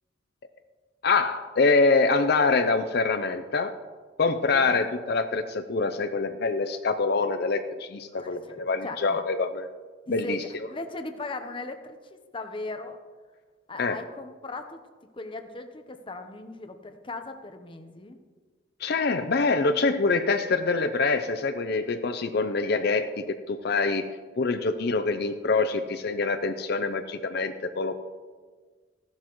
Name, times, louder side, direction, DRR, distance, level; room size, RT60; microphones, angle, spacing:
voice 1, 1.0-3.7 4.2-9.7 10.1-10.4 13.8-14.0 18.8-24.1 24.4-27.9, left 3 dB, 60° left, 8 dB, 0.6 m, -25 dB
voice 2, 4.5-4.9 8.1-8.5 8.8-9.0 10.1-10.4 10.7-13.0 13.7-14.8 15.1-18.2, left 2 dB, 30° left, 7 dB, 0.9 m, -38 dB
15.5 x 11.5 x 3.1 m, 1.5 s
head